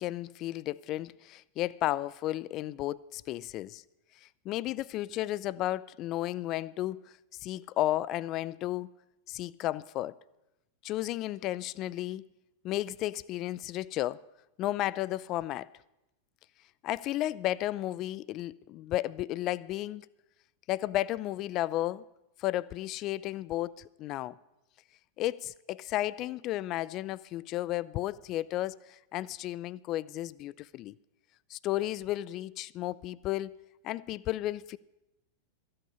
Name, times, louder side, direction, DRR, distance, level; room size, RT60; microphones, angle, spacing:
voice 1, 0.0-3.8 4.5-7.0 7.4-8.9 9.3-10.2 10.8-12.3 12.6-14.2 14.6-15.7 16.8-20.1 20.7-22.1 22.4-24.4 25.2-31.0 31.5-34.8, left 15 dB, 35° left, 0.3 m, -33 dB
14.0 x 8.6 x 6.8 m
figure-of-eight pair, 90°, 0 cm